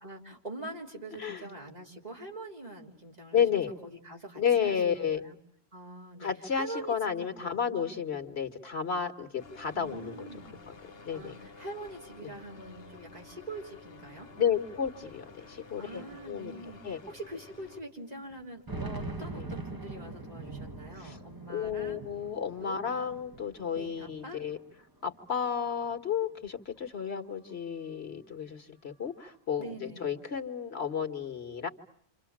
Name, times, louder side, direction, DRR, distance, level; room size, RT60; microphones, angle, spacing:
voice 1, 0.0-5.4 5.7-7.3 7.6-7.9 9.7-10.6 11.1-14.3 15.8-22.0 22.6-22.8 23.7-24.4 29.6-30.1, right 2 dB, 40° right, -1 dB, 3.9 m, -44 dB
voice 2, 3.3-3.7 4.4-5.2 6.2-10.3 10.7-10.8 11.0-11.4 12.2-12.3 14.4-16.5 16.8-17.0 19.3-19.5 21.0-21.2 21.5-24.6 25.0-31.7, left 7 dB, 85° left, 7 dB, 1.9 m, -32 dB
sound 1, 9.4-17.8, left 4 dB, 70° left, 1.7 m, -51 dB
sound 2, 14.7-14.8 15.0-15.1 16.0-16.1 16.6-16.7 18.3-24.7 25.1-26.1, right 2 dB, 20° right, 1.6 m, -43 dB
29.0 x 27.0 x 7.4 m, 0.66 s
omnidirectional pair, 1.1 m